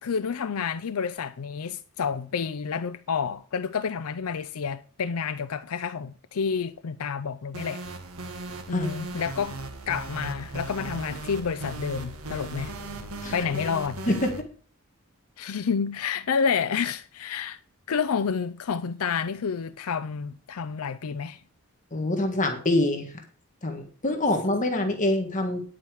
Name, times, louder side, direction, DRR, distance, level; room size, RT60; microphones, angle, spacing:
voice 1, 0.0-7.8 8.7-9.6 9.9-12.7 13.3-14.0 15.4-17.6 17.9-21.4, left 6 dB, 85° left, 0.5 m, -29 dB
sound 1, 7.5-14.4, right 2 dB, 85° right, 1.6 m, -37 dB
voice 2, 21.9-23.1 23.6-25.6, left 1 dB, 35° left, 1.6 m, -25 dB
10.0 x 8.6 x 4.8 m
head